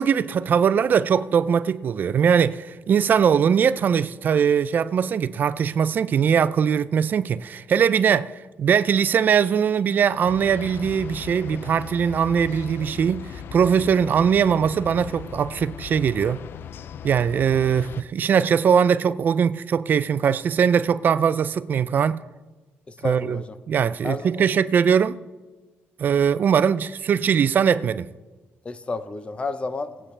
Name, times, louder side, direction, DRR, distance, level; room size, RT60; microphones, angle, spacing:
voice 1, 0.0-8.3 8.6-16.4 17.0-22.2 23.0-23.4 23.7-25.2 26.0-28.1, right 7 dB, 50° right, 0.4 m, -21 dB
sound 1, 10.3-18.0, left 9 dB, 60° left, 0.4 m, -38 dB
voice 2, 22.9-23.6 24.0-24.5 28.6-30.1, left 3 dB, 25° left, 0.7 m, -32 dB
19.5 x 8.6 x 3.3 m
cardioid pair, 130°, 4 cm